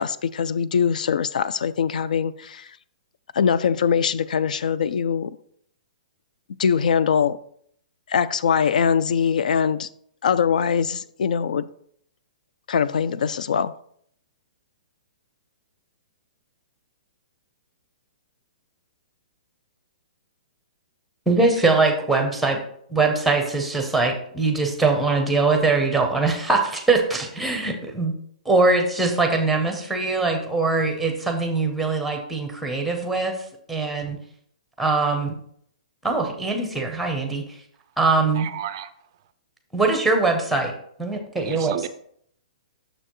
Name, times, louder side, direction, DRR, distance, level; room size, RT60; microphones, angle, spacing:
voice 1, 0.0-2.7 3.3-5.4 6.6-7.4 8.1-9.9 10.2-11.7 12.7-13.7, left 7 dB, 75° left, 0.3 m, -22 dB
voice 2, 21.3-22.6 22.9-28.1 28.5-33.4 33.7-34.2 34.8-35.4 36.0-37.4 38.0-38.5 39.7-40.7 41.0-41.9, right 3 dB, ahead, 0.6 m, -22 dB
voice 3, 38.4-38.9 41.5-41.9, right 11 dB, 35° right, 0.3 m, -32 dB
6.7 x 6.4 x 3.0 m
hypercardioid pair, 175°, 4 cm